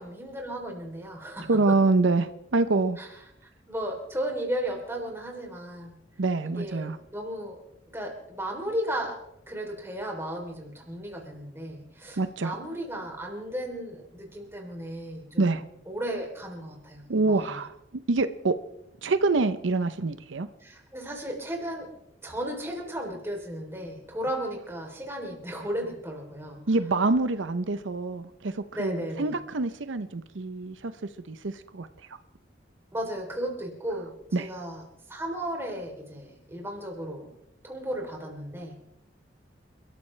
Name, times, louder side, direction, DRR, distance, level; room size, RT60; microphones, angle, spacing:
voice 1, 0.0-1.8 3.0-3.1 3.7-6.0 6.4-7.6 7.9-9.2 9.5-15.6 15.9-17.6 20.6-21.9 22.2-26.6 28.7-29.4 32.9-34.8 35.1-37.3 37.6-38.8, right 1 dB, 15° right, 1 dB, 3.3 m, -35 dB
voice 2, 1.5-3.0 6.2-7.0 12.2-12.6 15.4-15.6 17.1-17.7 18.1-18.6 19.0-20.5 26.7-30.9 31.3-31.9 34.3-34.5, right 3 dB, 80° right, 11 dB, 0.7 m, -26 dB
29.0 x 13.5 x 3.3 m, 0.81 s
head